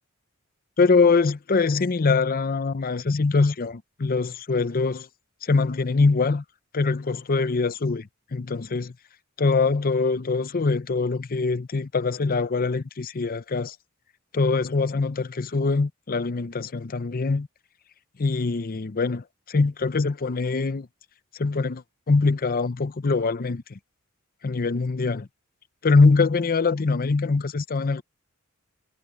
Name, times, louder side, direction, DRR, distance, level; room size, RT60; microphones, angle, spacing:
voice 1, 0.8-5.1 5.4-6.4 6.7-8.9 9.4-13.8 14.3-17.5 18.2-20.9 21.4-23.8 24.4-25.3 25.8-28.0, left 4 dB, 45° left, 0.6 m, -23 dB
head